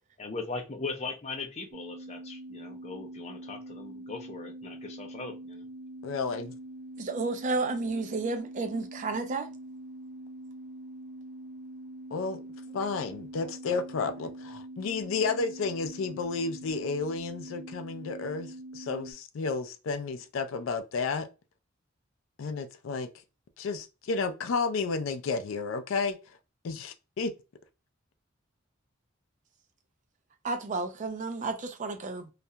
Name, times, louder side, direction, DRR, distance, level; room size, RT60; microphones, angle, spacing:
voice 1, 0.2-5.7, left 3 dB, 35° left, 0.5 m, -39 dB
sound 1, 1.7-19.1, right 1 dB, 55° right, 0.8 m, -44 dB
voice 2, 6.0-6.5 12.1-12.4 12.7-21.3 22.4-23.1 23.6-26.2 26.6-27.3, left 4 dB, 85° left, 0.4 m, -32 dB
voice 3, 7.0-9.5 30.4-32.3, right 3 dB, 40° right, 0.4 m, -32 dB
2.4 x 2.1 x 2.7 m
head